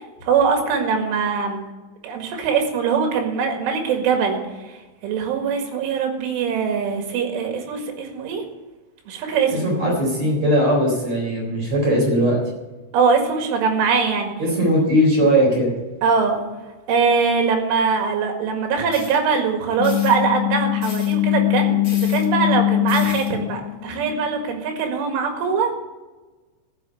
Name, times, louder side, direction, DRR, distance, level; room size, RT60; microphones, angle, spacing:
voice 1, 0.0-1.6 2.0-4.4 5.0-8.4 9.1-9.7 12.9-14.3 16.0-16.4 16.9-25.7, right 5 dB, 80° right, 3 dB, 4.4 m, -22 dB
voice 2, 9.5-12.4 14.4-15.7, equal, 35° right, -1 dB, 4.7 m, -19 dB
sound 1, 18.9-19.1 19.8-20.1 20.8-21.1 21.8-22.2 22.9-23.3, left 3 dB, 30° left, 1.6 m, -38 dB
sound 2, 19.8-25.0, left 16 dB, 85° left, 2.9 m, -22 dB
14.0 x 7.5 x 8.3 m, 1.2 s
omnidirectional pair, 5.6 m